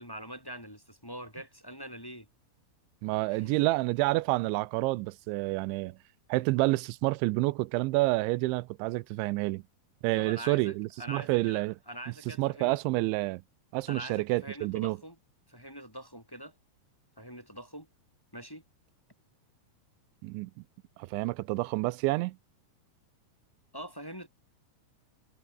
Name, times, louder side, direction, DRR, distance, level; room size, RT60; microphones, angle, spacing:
voice 1, 0.0-2.3 3.3-3.5 10.2-11.6 11.9-12.8 13.9-15.2 15.5-16.5 17.2-17.9 18.3-18.6 23.7-24.3, right 1 dB, 5° left, 5.4 m, -44 dB
voice 2, 3.0-6.0 6.3-9.6 10.0-11.7 12.4-13.4 13.7-15.0 20.2-20.5 21.0-22.4, right 21 dB, 85° right, 3.0 m, -28 dB
omnidirectional pair, 5.2 m